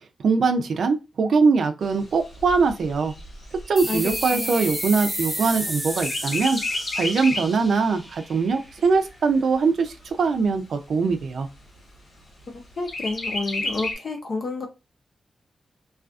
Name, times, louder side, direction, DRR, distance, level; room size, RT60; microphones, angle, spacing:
voice 1, 0.2-3.1 3.7-6.6 7.0-11.5, right 4 dB, 75° right, 0.4 m, -22 dB
Chirp tweet, 1.8-5.6 6.0-7.6 8.1-8.2 8.5-9.5 10.1-10.2 10.5-10.6 11.1-11.6 12.9-13.9, left 2 dB, 75° left, 1.2 m, -31 dB
sound 1, 3.8-8.9, equal, 5° right, 1.0 m, -32 dB
voice 2, 3.9-4.5 12.8-14.7, left 3 dB, 60° left, 0.7 m, -30 dB
2.4 x 2.3 x 2.4 m
wide cardioid pair, 120°, 0 cm